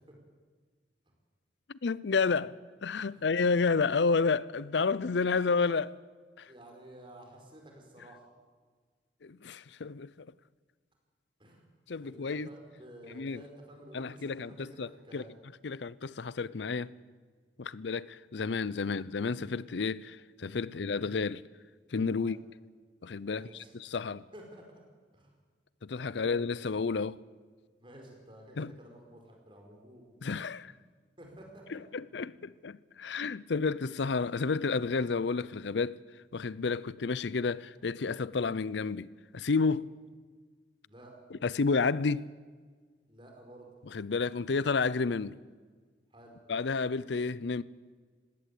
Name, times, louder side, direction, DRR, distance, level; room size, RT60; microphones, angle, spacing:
voice 1, 1.7-2.6 2.8-6.0 6.4-6.5 9.2-10.3 11.9-12.5 13.1-13.4 13.9-15.2 15.6-16.9 17.6-21.4 21.9-22.4 23.0-24.2 25.8-27.2 28.6-28.7 30.2-30.7 31.7-36.0 36.3-39.1 39.3-39.9 41.3-42.3 43.9-45.4 46.5-47.6, left 4 dB, 75° left, 0.6 m, -31 dB
voice 2, 6.4-8.2 11.4-11.6 12.0-15.3 17.6-17.8 20.6-20.8 22.2-22.4 23.3-23.7 24.1-24.6 25.1-25.3 26.1-26.4 27.8-30.0 31.2-31.7 39.7-39.9 40.8-41.1 43.1-43.7 46.1-46.4, right 1 dB, 30° right, 4.7 m, -52 dB
20.0 x 17.5 x 8.4 m
head